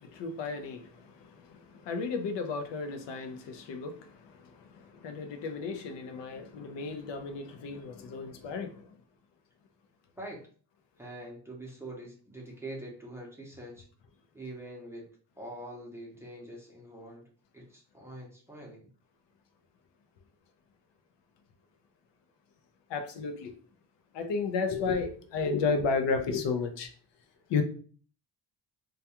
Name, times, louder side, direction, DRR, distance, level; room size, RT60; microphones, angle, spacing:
voice 1, 0.0-8.9 22.9-23.5 24.1-26.9 27.5-27.6, left 4 dB, 85° left, 0.5 m, -33 dB
voice 2, 11.0-13.9 14.3-15.1 15.4-17.3 17.5-18.9, right 1 dB, 5° right, 0.6 m, -44 dB
2.3 x 2.2 x 2.8 m
cardioid pair, 130°, 42 cm